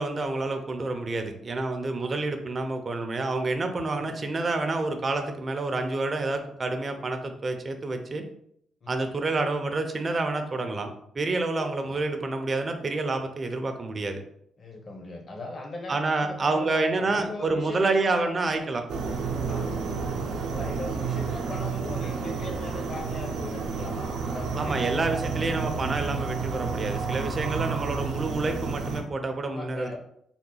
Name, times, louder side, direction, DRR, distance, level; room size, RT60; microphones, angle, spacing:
voice 1, 0.0-8.2 8.9-14.2 15.9-18.8 24.6-30.0, right 3 dB, 35° right, 5 dB, 0.6 m, -28 dB
voice 2, 11.7-12.0 14.6-18.3 19.4-19.8 20.5-25.8 29.5-30.0, left 2 dB, 45° left, 2 dB, 0.9 m, -40 dB
sound 1, 18.9-29.0, right 5 dB, 75° right, 0.6 m, -30 dB
3.8 x 2.2 x 3.9 m, 0.71 s
cardioid pair, 90°, 0 cm